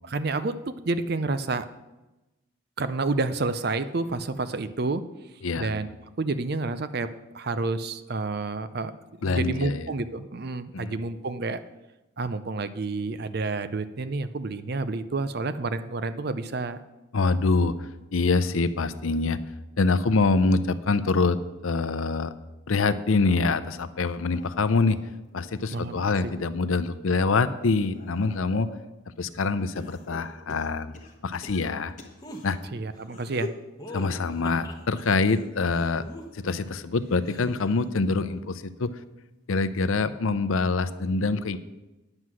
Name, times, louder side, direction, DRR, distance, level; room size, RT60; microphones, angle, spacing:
voice 1, 0.0-1.7 2.8-5.0 5.6-5.9 6.2-7.1 7.3-8.9 9.2-11.6 12.2-16.8 25.7-26.0 32.7-33.5, right 3 dB, 50° right, 13 dB, 0.5 m, -29 dB
voice 2, 9.2-9.8 10.7-11.0 17.1-17.7 18.1-19.4 19.8-21.4 21.6-22.3 22.7-25.0 25.3-28.7 29.2-30.9 31.2-32.0 32.4-32.6 33.9-36.0 36.3-38.9 39.5-41.6, left 3 dB, 85° left, 13 dB, 0.6 m, -25 dB
sound 1, 24.1-26.4 26.9-28.9 29.7-32.5 33.0-33.7 34.9-37.7 38.1-38.5 39.7-39.8, left 2 dB, 40° left, 1.3 m, -46 dB
sound 2, 32.2-32.4 33.8-35.0 35.7-36.7 37.2-37.7, left 1 dB, 20° left, 1.1 m, -41 dB
9.8 x 7.6 x 6.2 m, 1.0 s
head